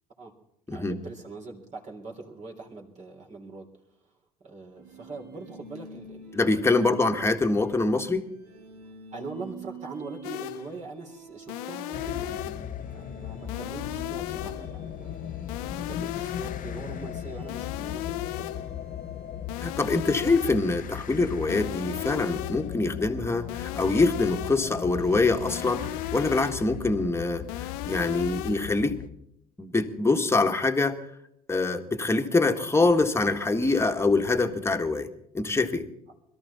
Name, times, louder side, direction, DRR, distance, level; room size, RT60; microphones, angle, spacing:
voice 1, 0.7-3.7 4.0-6.9 9.1-12.6 12.9-15.1 15.8-19.0 19.9-20.1, right 3 dB, 40° right, -1 dB, 3.5 m, -42 dB
sound 1, 4.8-19.9, right 4 dB, 80° right, 2.3 m, -48 dB
voice 2, 6.3-8.3 19.6-27.4 27.8-29.0 29.6-31.0 31.5-35.1 35.3-35.9, left 3 dB, 15° left, 6 dB, 1.7 m, -24 dB
sound 2, 10.2-10.8 11.5-12.8 13.5-14.8 15.5-16.8 17.5-18.8 19.5-20.8 21.5-22.8 23.5-24.8 25.5-26.8 27.5-28.8, left 17 dB, 70° left, 0.7 m, -36 dB
sound 3, 11.9-29.1, left 10 dB, 45° left, 0.9 m, -37 dB
22.0 x 13.5 x 4.2 m, 0.75 s
hypercardioid pair, 65°, 20 cm